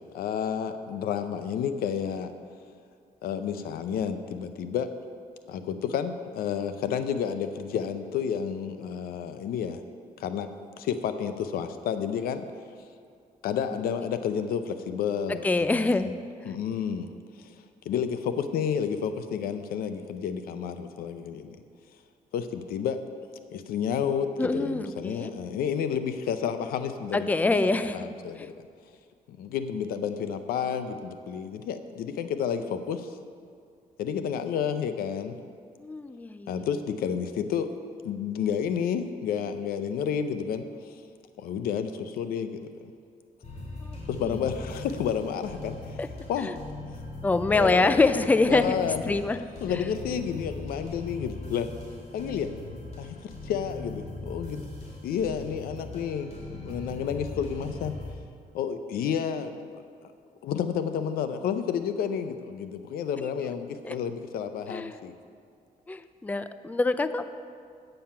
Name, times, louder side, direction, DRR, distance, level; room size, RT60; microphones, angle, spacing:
voice 1, 0.0-2.3 3.2-4.9 5.5-9.8 10.2-10.5 10.8-12.5 13.4-16.1 16.5-17.1 17.4-17.5 17.9-21.6 22.3-23.0 23.5-28.5 29.3-33.2 34.0-35.4 36.5-37.7 38.0-41.0 41.4-42.7 44.1-46.0 46.3-46.5 47.5-48.0 48.5-49.1 49.6-51.7 52.1-52.5 53.0-54.6 55.0-56.3 56.6-57.9 58.5-59.8 60.4-65.1, left 7 dB, 85° left, 10 dB, 0.6 m, -30 dB
voice 2, 15.3-16.1 24.4-25.3 27.1-28.1 28.4-28.5 35.8-36.6 43.8-44.0 46.0-46.1 46.4-46.5 47.2-49.4 63.8-64.0 64.7-65.0 65.9-67.3, left 3 dB, 10° left, 12 dB, 0.4 m, -25 dB
sound 1, 43.4-58.1, left 2 dB, 50° left, 2.6 m, -40 dB
8.7 x 7.8 x 5.6 m, 2.2 s
cardioid pair, 85°, 15 cm